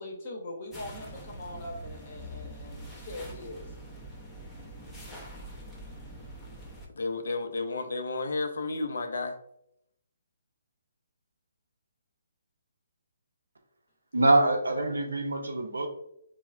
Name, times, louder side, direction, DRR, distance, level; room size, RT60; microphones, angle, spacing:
voice 1, 0.0-3.7, left 1 dB, 45° left, -1 dB, 0.8 m, -41 dB
sound 1, 0.7-6.9, right 1 dB, 10° left, 0.5 m, -44 dB
voice 2, 6.9-9.4, left 3 dB, 75° left, 7 dB, 0.3 m, -32 dB
voice 3, 14.1-15.9, right 2 dB, 85° right, 4 dB, 0.5 m, -24 dB
3.0 x 2.0 x 2.3 m, 0.74 s
hypercardioid pair, 145°, 0 cm